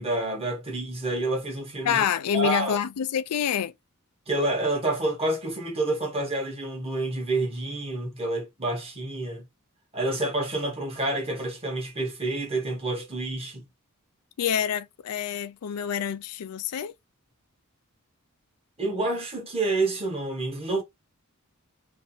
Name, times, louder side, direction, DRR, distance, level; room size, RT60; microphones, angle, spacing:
voice 1, 0.0-2.0 2.3-2.8 4.3-9.5 9.9-13.7 18.8-20.8, right 2 dB, 25° right, 1.2 m, -28 dB
voice 2, 1.8-3.7 14.4-16.9, left 8 dB, 85° left, 0.4 m, -27 dB
2.9 x 2.5 x 2.7 m
head